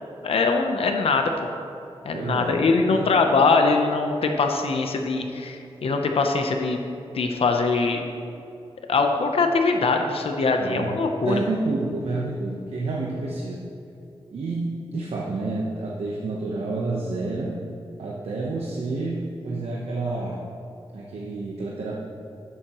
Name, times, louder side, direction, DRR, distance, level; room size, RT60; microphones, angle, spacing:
voice 1, 0.2-1.5 2.0-6.8 7.1-8.0 8.9-11.4, left 4 dB, 70° left, 4 dB, 0.8 m, -22 dB
voice 2, 2.1-3.1 10.6-10.9 11.2-13.6 14.3-17.5 18.0-20.4 20.9-22.0, right 3 dB, 90° right, -3 dB, 1.0 m, -29 dB
12.5 x 9.4 x 3.1 m, 2.7 s
wide cardioid pair, 160°, 10 cm